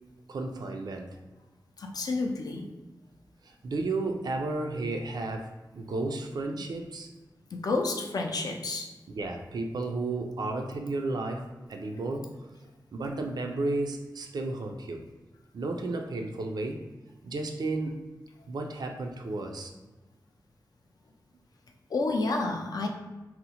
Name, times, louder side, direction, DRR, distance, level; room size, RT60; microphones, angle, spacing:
voice 1, 0.3-1.1 3.4-7.1 9.1-12.3 12.9-15.0 15.5-16.8 17.2-18.0 18.5-19.7, right 2 dB, 65° right, 3 dB, 0.3 m, -33 dB
voice 2, 1.8-2.6 6.5-6.7 7.5-8.9 21.9-22.9, left 3 dB, 60° left, 2 dB, 0.4 m, -30 dB
2.7 x 2.0 x 2.7 m, 1.1 s
wide cardioid pair, 100°, 7 cm